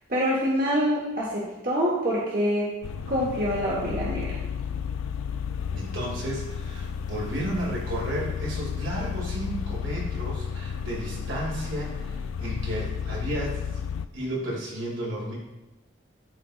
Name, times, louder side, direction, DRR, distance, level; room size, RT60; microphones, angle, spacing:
voice 1, 0.1-2.8 3.1-4.4, equal, 45° right, -5 dB, 1.1 m, -26 dB
sound 1, 2.8-14.0, left 7 dB, 85° left, 0.3 m, -32 dB
voice 2, 5.7-13.8 14.1-15.4, right 1 dB, 80° right, -3 dB, 2.2 m, -33 dB
12.0 x 4.1 x 2.4 m, 1.0 s
head